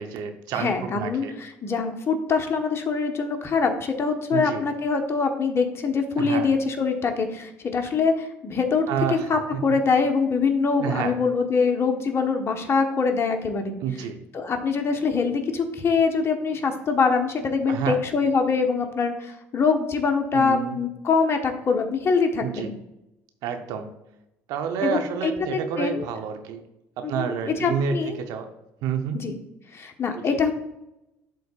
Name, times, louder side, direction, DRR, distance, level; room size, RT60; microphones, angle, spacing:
voice 1, 0.0-1.3 4.3-4.6 6.2-6.5 8.9-9.6 10.8-11.1 13.8-14.2 17.7-18.0 20.3-20.8 22.4-22.7 23.4-23.9 24.5-26.6 27.0-28.5 28.8-29.2, right 7 dB, 75° right, 6 dB, 0.8 m, -29 dB
voice 2, 0.5-13.8 14.3-22.7 24.8-26.1 27.0-28.2 29.1-29.4 29.7-30.5, left 5 dB, 40° left, 4 dB, 1.2 m, -24 dB
11.5 x 3.9 x 2.5 m, 0.90 s
supercardioid pair, 75°, 7 cm